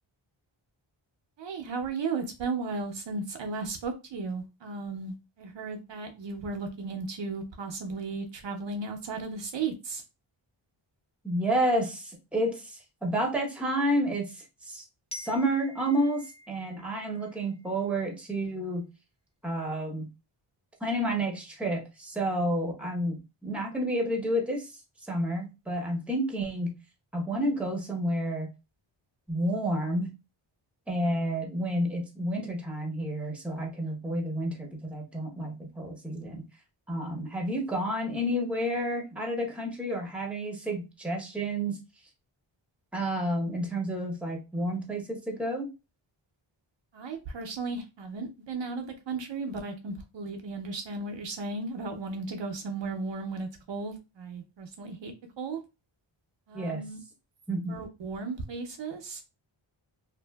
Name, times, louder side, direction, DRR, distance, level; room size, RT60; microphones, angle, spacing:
voice 1, 1.4-10.0 46.9-55.6 56.5-57.0 57.7-59.2, right 4 dB, 60° right, 0.6 m, -35 dB
voice 2, 11.2-14.8 15.1-18.9 19.4-20.1 20.8-26.7 27.1-28.5 29.3-30.1 30.9-36.4 36.9-41.8 42.9-45.7 56.5-56.8 57.5-57.8, right 1 dB, ahead, 0.8 m, -30 dB
Glockenspiel, 15.1-18.0, left 2 dB, 15° left, 0.4 m, -48 dB
2.6 x 2.5 x 2.2 m
wide cardioid pair, 80°, 50 cm